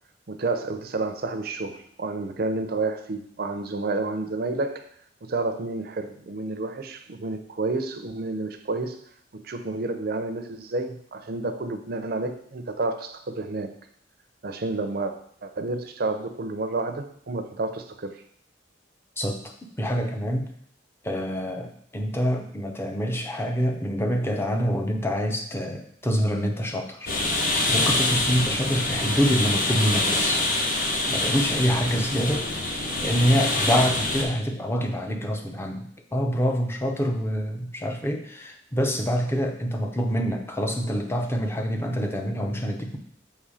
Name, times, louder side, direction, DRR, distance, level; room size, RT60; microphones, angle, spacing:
voice 1, 0.3-4.8 5.2-9.0 9.3-13.7 14.4-15.2 15.4-18.2, right 3 dB, 55° right, 7 dB, 0.6 m, -30 dB
voice 2, 19.8-20.5 21.0-32.5 33.0-43.0, equal, 15° left, 3 dB, 0.6 m, -26 dB
sound 1, 27.1-34.2, left 2 dB, 50° left, 1.0 m, -25 dB
6.7 x 3.1 x 4.8 m, 0.67 s
head